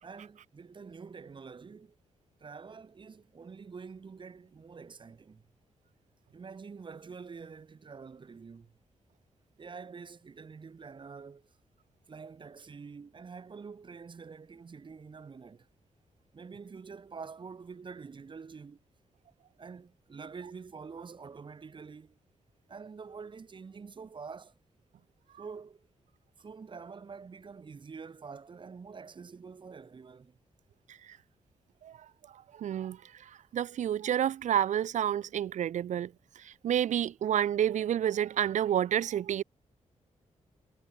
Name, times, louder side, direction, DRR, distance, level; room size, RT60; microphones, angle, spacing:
voice 1, 0.0-2.0 2.4-5.4 6.3-8.7 9.6-11.5 12.1-15.7 16.3-18.8 19.6-22.2 22.7-24.5 25.4-25.8 26.4-30.4, right 5 dB, 40° right, 3.1 m, -46 dB
voice 2, 32.3-39.4, right 10 dB, 80° right, 0.9 m, -30 dB
wide cardioid pair, 115°, 12 cm